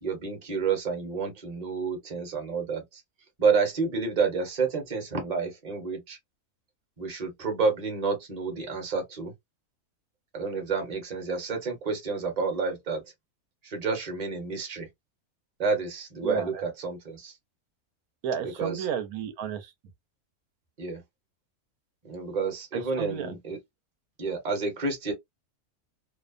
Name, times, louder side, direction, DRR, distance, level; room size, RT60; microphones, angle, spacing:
voice 1, 0.0-3.0 3.4-6.2 7.0-9.3 10.3-13.0 13.6-14.9 15.6-17.3 18.6-18.9 20.8-21.0 22.0-23.6 24.2-25.1, right 4 dB, 35° right, 0.8 m, -29 dB
voice 2, 16.2-16.6 18.2-19.7 22.7-23.4, right 8 dB, 90° right, 1.1 m, -33 dB
2.6 x 2.1 x 2.3 m
omnidirectional pair, 1.5 m